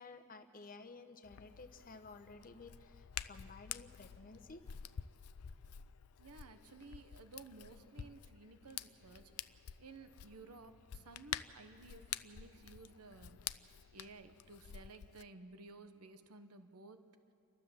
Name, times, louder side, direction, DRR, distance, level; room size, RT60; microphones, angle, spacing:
voice 1, 0.0-4.6, left 3 dB, 40° left, 8 dB, 1.0 m, -54 dB
Hands, 1.2-15.2, left 10 dB, 80° left, 0.5 m, -49 dB
voice 2, 6.2-13.6 13.9-17.0, right 3 dB, 85° right, 9 dB, 1.1 m, -55 dB
29.5 x 12.5 x 7.4 m, 2.6 s
head